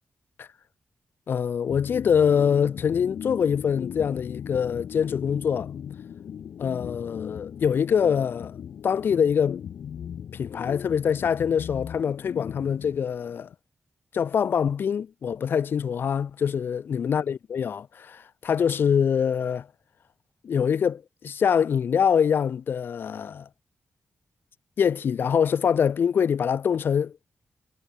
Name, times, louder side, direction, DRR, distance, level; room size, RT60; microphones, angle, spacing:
voice 1, 1.3-5.7 6.6-8.6 8.8-9.6 10.3-13.5 14.1-19.7 20.4-23.5 24.8-27.1, left 7 dB, 60° left, 1.8 m, -24 dB
sound 1, 1.7-13.5, left 8 dB, 80° left, 5.5 m, -38 dB
wide cardioid pair, 150°, 4 cm